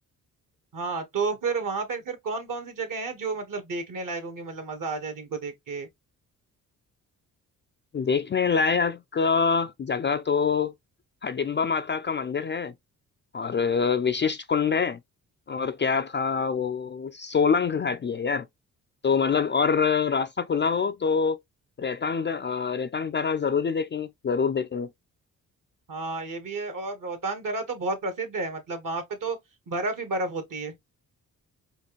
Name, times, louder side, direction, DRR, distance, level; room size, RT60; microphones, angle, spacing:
voice 1, 0.7-5.9 25.9-29.4 29.7-30.7, right 3 dB, 55° right, 1.3 m, -31 dB
voice 2, 7.9-10.7 11.2-12.7 13.3-15.0 15.5-18.5 19.0-21.4 21.8-24.9, left 5 dB, 30° left, 0.4 m, -25 dB
4.4 x 2.3 x 3.0 m
supercardioid pair, 50°, 38 cm